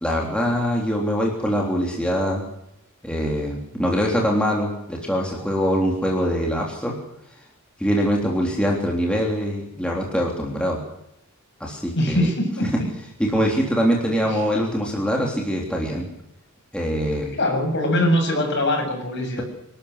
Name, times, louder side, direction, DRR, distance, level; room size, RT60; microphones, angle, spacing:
voice 1, 0.0-2.4 3.0-6.9 7.8-10.8 11.6-12.3 13.2-16.1 16.7-17.4, equal, 5° left, -2 dB, 3.5 m, -23 dB
voice 2, 12.0-12.7 14.3-14.4 17.4-19.4, left 1 dB, 55° left, 3 dB, 7.5 m, -22 dB
26.0 x 12.5 x 8.1 m, 0.83 s
head